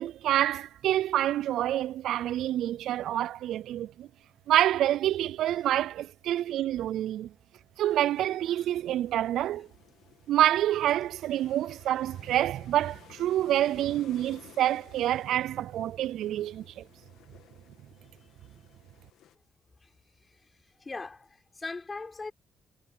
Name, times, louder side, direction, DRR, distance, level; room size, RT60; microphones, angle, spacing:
voice 1, 0.0-4.1 4.5-7.3 7.8-9.7 10.3-16.8, right 12 dB, 80° right, 0.4 m, -27 dB
sound 1, 7.8-19.3, left 11 dB, 85° left, 2.3 m, -56 dB
voice 2, 20.8-22.3, left 3 dB, 25° left, 4.1 m, -40 dB
cardioid pair, 90°, 0 cm